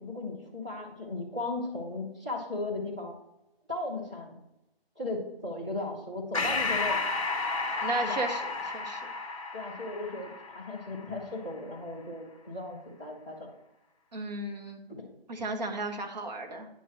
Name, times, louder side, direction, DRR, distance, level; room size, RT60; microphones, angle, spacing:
voice 1, 0.0-3.1 3.7-4.4 5.0-7.0 8.0-8.2 9.5-13.5 14.9-15.0, left 2 dB, 5° right, -7 dB, 0.5 m, -36 dB
Breathing, 6.3-11.2, left 3 dB, 35° left, 0.9 m, -32 dB
voice 2, 7.8-9.1 14.1-14.8 15.3-16.7, right 2 dB, 45° right, 3 dB, 1.2 m, -34 dB
9.0 x 3.0 x 6.3 m, 0.90 s
figure-of-eight pair, 155°, 31 cm